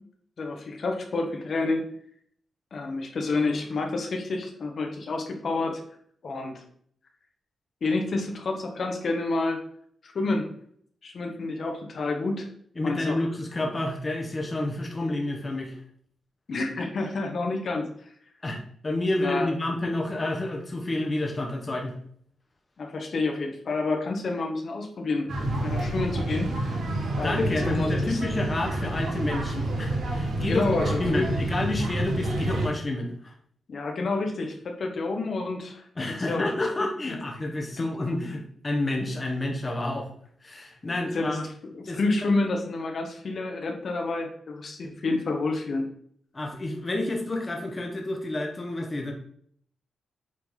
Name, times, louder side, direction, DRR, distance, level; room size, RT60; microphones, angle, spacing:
voice 1, 0.4-1.8 2.7-5.8 6.2-6.6 7.8-9.6 10.0-10.5 11.0-12.5 12.8-13.2 16.5-17.9 19.2-19.5 22.8-25.3 25.6-26.7 27.2-28.2 30.4-31.3 33.7-35.8 36.3-36.4 37.8-37.9 41.1-41.5 41.7-45.8, left 3 dB, 55° left, 2 dB, 1.2 m, -29 dB
voice 2, 12.8-15.8 18.4-21.9 27.2-33.3 36.0-40.1 40.4-41.5 41.9-42.0 42.4-42.5 46.3-49.1, left 2 dB, 25° left, 1 dB, 1.1 m, -29 dB
sound 1, 25.3-32.7, right 1 dB, 75° right, 1.6 m, -28 dB
7.7 x 3.9 x 3.8 m, 0.62 s
cardioid pair, 100°, 0 cm